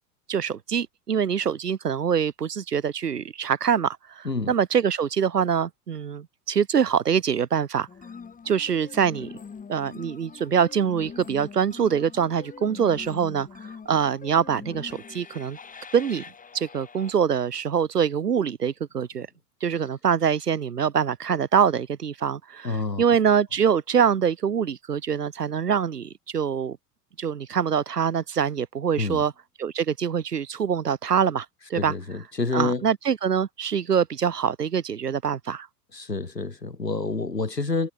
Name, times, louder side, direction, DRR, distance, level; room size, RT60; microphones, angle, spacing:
voice 1, 0.3-7.9 8.5-9.3 9.7-15.6 15.9-16.2 16.5-19.3 19.6-26.8 27.2-29.3 29.6-31.9 32.5-35.7, right 7 dB, 75° right, 2.6 m, -24 dB
sound 1, 7.9-17.1, left 6 dB, 15° left, 4.9 m, -43 dB
voice 2, 22.6-23.1 29.0-29.2 31.7-32.9 35.9-37.9, left 3 dB, 85° left, 3.8 m, -28 dB
figure-of-eight pair, 90°, 48 cm